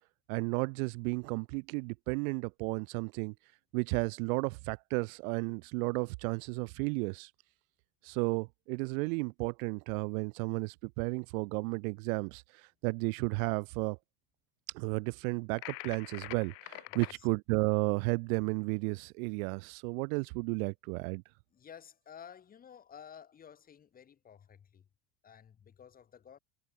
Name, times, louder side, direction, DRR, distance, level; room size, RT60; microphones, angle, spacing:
voice 1, 0.3-3.3 3.7-7.3 8.0-14.0 14.7-21.2, right 30 dB, 70° right, 0.6 m, -33 dB
sound 1, 15.6-17.2, left 35 dB, 45° left, 0.7 m, -44 dB
voice 2, 16.9-17.3 21.5-24.9 25.2-26.4, left 8 dB, 20° left, 2.9 m, -53 dB
cardioid pair, 180°, 45 cm